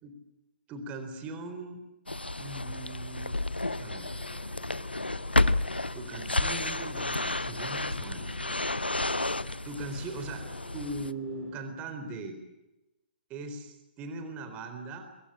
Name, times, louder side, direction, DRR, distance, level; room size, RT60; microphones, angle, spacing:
voice 1, 0.7-1.8 2.4-3.4 3.8-4.1 5.9-8.7 9.6-10.5 10.7-12.4 13.3-15.0, right 3 dB, 25° right, 7 dB, 3.9 m, -40 dB
sound 1, 2.1-11.1, left 2 dB, 85° left, 0.8 m, -31 dB
sound 2, 3.6-11.6, left 1 dB, 5° left, 7.9 m, -53 dB
23.0 x 22.0 x 8.8 m, 0.95 s
figure-of-eight pair, 125°, 5 cm